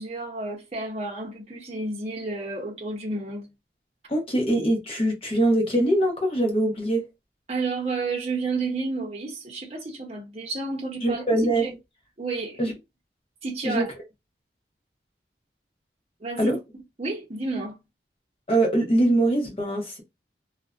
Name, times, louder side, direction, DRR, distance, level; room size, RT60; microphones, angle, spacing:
voice 1, 0.0-3.5 7.5-11.2 11.6-11.7 12.2-12.6 13.4-13.9 16.2-16.6 17.0-17.8, right 3 dB, 35° right, 0.6 m, -31 dB
voice 2, 4.1-7.0 11.0-11.6 12.6-12.7 13.6-13.8 16.4-16.6 18.5-20.0, right 1 dB, 30° left, 0.7 m, -22 dB
2.5 x 2.1 x 2.3 m
head